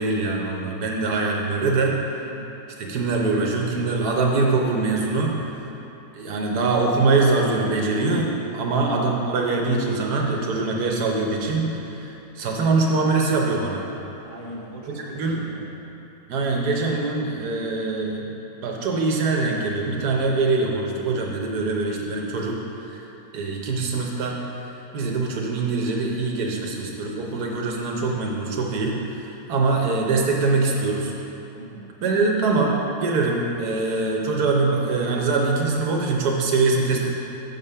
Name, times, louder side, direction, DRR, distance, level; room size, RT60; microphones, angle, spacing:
voice 1, 0.0-2.0 2.8-5.3 6.1-13.9 15.1-15.4 16.3-18.3 18.6-23.0 23.3-24.4 24.9-31.1 32.0-37.1, right 3 dB, 85° right, 0 dB, 1.4 m, -23 dB
voice 2, 14.2-15.7 31.6-31.9, right 1 dB, 60° right, -3 dB, 1.5 m, -40 dB
7.5 x 5.3 x 5.5 m, 2.9 s
omnidirectional pair, 1.6 m